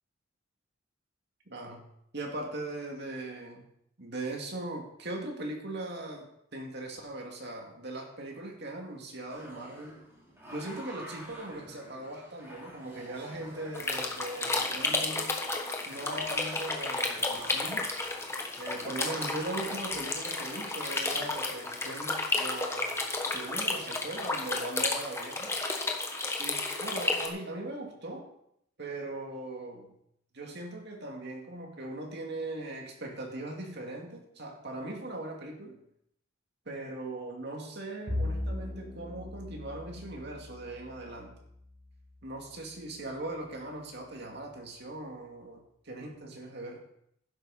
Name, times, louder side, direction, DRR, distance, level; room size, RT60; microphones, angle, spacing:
voice 1, 1.5-1.8 2.1-3.7 4.0-10.0 10.5-15.4 15.9-17.9 18.6-23.0 23.2-25.5 26.4-28.3 28.8-29.9 30.3-35.8 36.7-41.4 42.2-46.8, right 2 dB, 55° right, 1 dB, 2.4 m, -40 dB
sound 1, 9.3-21.9, equal, 10° right, 3.7 m, -49 dB
sound 2, 13.7-27.3, left 3 dB, 15° left, 1.2 m, -32 dB
Bowed string instrument, 38.1-42.7, left 1 dB, 30° right, 5.8 m, -38 dB
11.5 x 9.9 x 4.3 m, 0.74 s
head